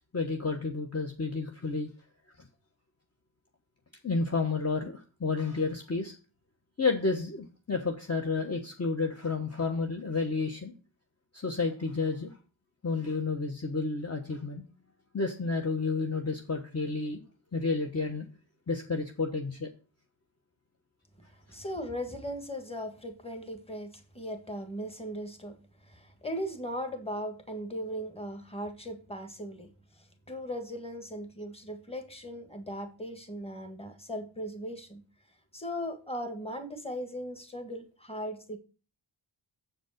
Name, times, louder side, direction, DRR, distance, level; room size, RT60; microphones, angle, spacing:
voice 1, 0.1-1.9 4.0-6.1 6.8-10.7 11.3-12.3 12.8-14.6 15.1-17.2 17.5-18.3 18.7-19.7, left 4 dB, 30° left, 1.1 m, -31 dB
voice 2, 21.5-25.6 25.9-29.7 30.3-35.0 35.5-38.6, equal, 10° left, 1.7 m, -38 dB
7.7 x 5.1 x 6.5 m
wide cardioid pair, 95°, 48 cm